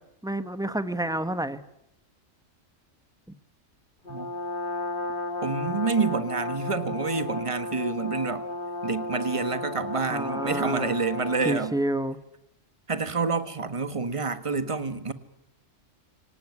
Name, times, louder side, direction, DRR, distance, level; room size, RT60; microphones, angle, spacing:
voice 1, 0.2-1.6 10.1-10.9 11.4-12.2, right 1 dB, 5° right, 1.0 m, -29 dB
Brass instrument, 4.0-11.8, left 2 dB, 40° left, 3.4 m, -34 dB
voice 2, 5.4-8.4 8.8-11.7 12.9-15.1, right 4 dB, 25° right, 1.4 m, -28 dB
24.5 x 18.5 x 9.6 m
omnidirectional pair, 1.4 m